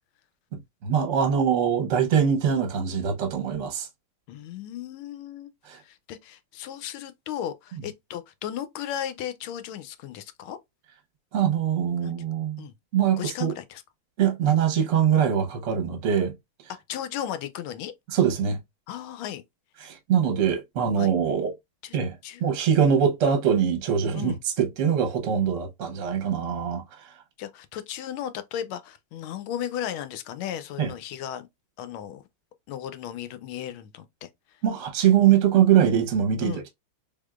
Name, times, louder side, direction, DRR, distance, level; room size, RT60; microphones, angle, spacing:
voice 1, 0.8-3.9 5.7-5.8 11.3-12.6 12.9-13.5 14.2-16.3 18.1-18.6 19.8-21.5 21.9-22.1 22.4-26.8 30.8-30.9 34.6-36.7, right 8 dB, 55° right, 0.9 m, -23 dB
voice 2, 4.3-10.6 12.0-12.1 12.6-12.7 13.2-13.8 16.9-17.9 18.9-19.4 21.0-21.1 21.8-22.0 22.2-22.4 24.1-24.4 27.4-31.5 31.8-32.2 32.7-34.3 36.4-36.6, left 10 dB, 85° left, 1.4 m, -35 dB
3.6 x 3.4 x 2.3 m
omnidirectional pair, 2.2 m